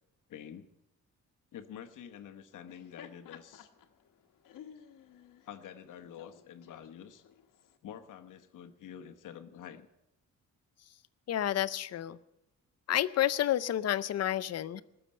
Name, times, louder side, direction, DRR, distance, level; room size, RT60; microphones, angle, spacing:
voice 1, 0.3-0.7 1.5-3.7 4.8-4.9 5.4-7.2 7.8-9.9, left 9 dB, 75° left, 7 dB, 1.1 m, -48 dB
Laughter, 2.5-7.8, left 9 dB, 90° left, 1.3 m, -55 dB
voice 2, 11.3-12.2 12.9-14.8, left 12 dB, 55° left, 16 dB, 0.6 m, -30 dB
20.0 x 7.0 x 8.7 m, 0.89 s
wide cardioid pair, 170°, 32 cm